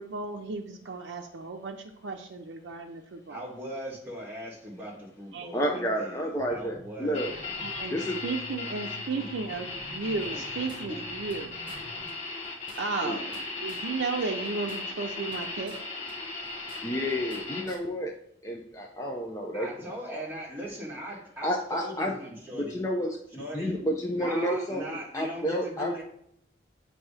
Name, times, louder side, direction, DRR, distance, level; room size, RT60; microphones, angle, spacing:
voice 1, 0.0-3.4 5.3-5.8 7.6-11.5 12.8-13.3 13.6-15.7, right 4 dB, 85° right, 1 dB, 0.5 m, -34 dB
voice 2, 3.3-7.2 9.2-9.3 10.9-11.0 19.5-22.8 23.3-23.8 24.2-26.0, equal, 10° right, -4 dB, 1.4 m, -39 dB
voice 3, 5.5-7.3 7.9-8.2 13.0-13.2 16.8-18.1 18.4-19.7 20.1-20.2 21.4-22.1 22.5-25.9, equal, 15° left, 0 dB, 0.4 m, -30 dB
sound 1, 6.4-12.1, equal, 85° left, 1.0 m, -48 dB
sound 2, 7.1-17.6, left 3 dB, 35° left, 1.1 m, -37 dB
sound 3, 10.2-11.4 11.7-11.8 12.1-12.2 12.4-13.9 14.2-15.8 16.1-17.4 17.7-17.8, right 2 dB, 25° right, 1.1 m, -50 dB
7.3 x 2.7 x 4.8 m, 0.70 s
head